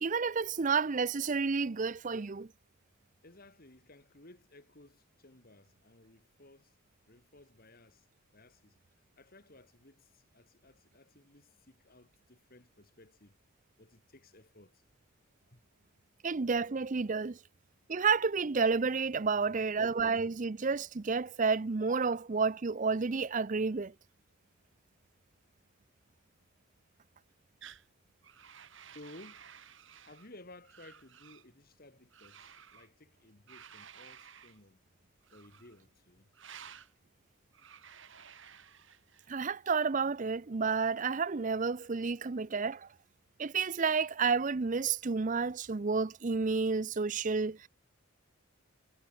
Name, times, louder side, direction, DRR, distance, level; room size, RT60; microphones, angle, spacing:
voice 1, 0.0-2.5 16.2-17.4 17.9-23.9 39.3-42.9 43.4-47.7, right 5 dB, 35° right, 0.5 m, -30 dB
voice 2, 3.2-6.7 7.1-8.1 8.3-8.8 9.2-13.3 13.8-14.8 15.5-15.6 19.1-19.7 28.9-29.5 30.0-34.8 35.3-36.3, left 2 dB, 40° left, 2.3 m, -57 dB
sound 1, 27.6-27.9 28.2-30.3 30.6-31.5 32.1-32.9 33.5-34.6 35.2-35.8 36.3-36.9 37.5-39.3, right 8 dB, 55° right, 3.5 m, -54 dB
head